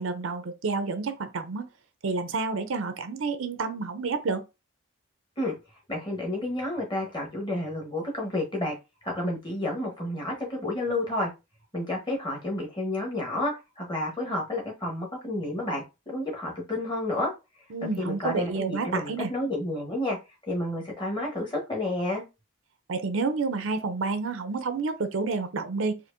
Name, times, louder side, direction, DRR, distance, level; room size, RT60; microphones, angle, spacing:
voice 1, 0.0-1.7 2.0-4.4 17.7-19.3 22.9-26.0, right 4 dB, 70° right, 0.5 m, -29 dB
voice 2, 5.9-8.8 9.0-11.3 11.7-17.3 18.0-20.2 20.4-22.2, left 1 dB, 20° left, 1.1 m, -30 dB
4.3 x 2.6 x 2.6 m
head